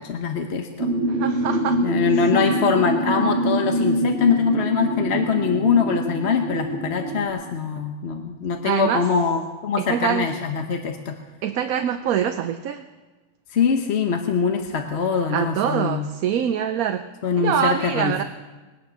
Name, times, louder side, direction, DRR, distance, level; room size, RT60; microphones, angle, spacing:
voice 1, 0.0-0.9 1.8-11.2 13.5-16.1 17.2-18.2, left 6 dB, 50° left, 4 dB, 1.1 m, -23 dB
sound 1, 0.8-7.3, right 1 dB, 50° right, 1.8 m, -24 dB
voice 2, 1.1-1.8 2.1-2.3 8.6-9.1 9.8-10.3 11.4-12.9 15.3-17.1 17.4-18.2, right 9 dB, 75° right, 8 dB, 1.1 m, -24 dB
21.0 x 9.5 x 6.2 m, 1.2 s
omnidirectional pair, 1.6 m